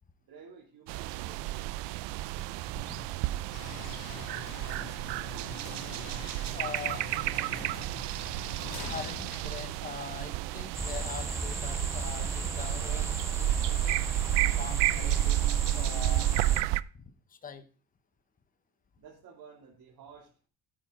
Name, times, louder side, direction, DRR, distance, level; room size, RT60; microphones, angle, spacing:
voice 1, 0.3-1.7 19.0-20.3, right 6 dB, 50° right, -4 dB, 3.0 m, -52 dB
sound 1, 0.9-16.8, right 16 dB, 70° right, 0.6 m, -31 dB
voice 2, 2.7-3.1 6.5-7.1 7.6-7.7 8.4-8.5 8.9-14.0 14.6-15.4 15.7-16.3 16.9-17.6, left 6 dB, 20° left, 9 dB, 1.1 m, -43 dB
sound 2, 3.5-10.5, left 6 dB, 55° left, 2.4 m, -45 dB
sound 3, 10.7-16.6, right 2 dB, 5° right, 0.4 m, -36 dB
14.5 x 9.0 x 3.8 m, 0.37 s
cardioid pair, 130°, 43 cm